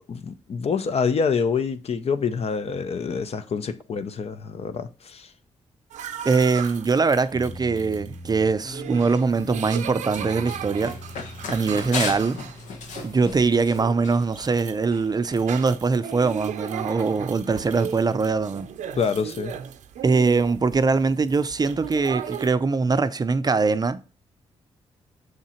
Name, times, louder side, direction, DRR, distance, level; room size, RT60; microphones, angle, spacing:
voice 1, 0.1-5.3 19.0-19.5, left 5 dB, 55° left, 0.6 m, -26 dB
sound 1, 5.9-22.5, right 9 dB, 90° right, 0.5 m, -37 dB
voice 2, 6.2-11.0 11.5-12.4 13.0-18.7 20.0-24.0, right 4 dB, 35° right, 0.5 m, -22 dB
sound 2, 7.3-12.5, left 1 dB, 15° left, 1.4 m, -40 dB
Run, 9.5-14.6, left 4 dB, 85° left, 1.0 m, -36 dB
6.4 x 3.7 x 4.3 m
cardioid pair, 65°, 12 cm